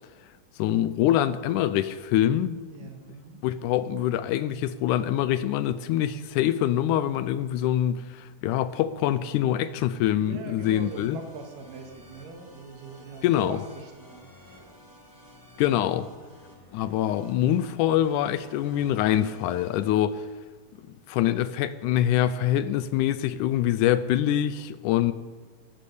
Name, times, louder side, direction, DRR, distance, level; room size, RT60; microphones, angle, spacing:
voice 1, 0.6-2.9 3.4-11.2 13.2-13.6 15.6-16.1 16.7-20.3 21.1-25.1, left 11 dB, 80° left, 1.9 m, -25 dB
voice 2, 2.7-3.4 10.2-14.8 16.2-16.3, right 4 dB, 80° right, 3.3 m, -42 dB
sound 1, 10.6-19.8, left 1 dB, 10° left, 1.2 m, -52 dB
14.0 x 11.5 x 6.9 m
omnidirectional pair, 3.8 m